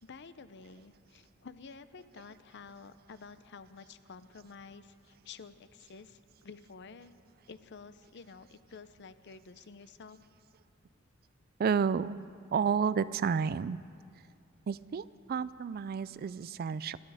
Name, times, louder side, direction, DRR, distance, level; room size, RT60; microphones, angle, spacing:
voice 1, 0.0-7.1 7.5-10.2, left 5 dB, 55° left, 13 dB, 0.6 m, -50 dB
voice 2, 11.6-12.2 12.5-13.8 14.7-17.0, right 6 dB, 45° right, 17 dB, 0.3 m, -31 dB
26.5 x 10.5 x 4.9 m, 2.3 s
head